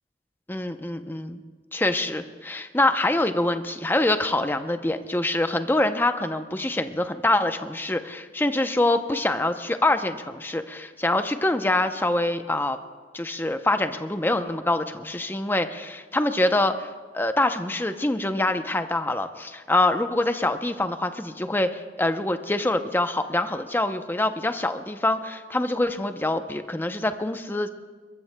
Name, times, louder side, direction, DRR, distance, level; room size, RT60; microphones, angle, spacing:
voice 1, 0.5-1.4 1.7-12.8 13.1-27.7, left 2 dB, 10° left, 8 dB, 0.6 m, -25 dB
22.0 x 21.5 x 2.2 m, 1.5 s
head